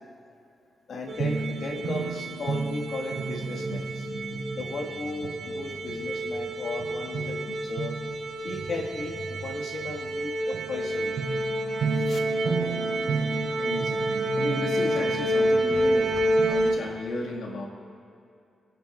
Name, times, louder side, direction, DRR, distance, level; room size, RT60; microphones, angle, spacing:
voice 1, 0.9-4.1 4.5-7.9 8.4-11.2 12.0-12.2, left 3 dB, 65° left, 2 dB, 1.5 m, -36 dB
sound 1, 1.1-16.7, right 1 dB, 70° right, 3.0 m, -28 dB
voice 2, 13.6-17.7, left 1 dB, 85° left, 0 dB, 1.7 m, -35 dB
23.0 x 9.1 x 2.4 m, 2.6 s
cardioid pair, 70°, 0 cm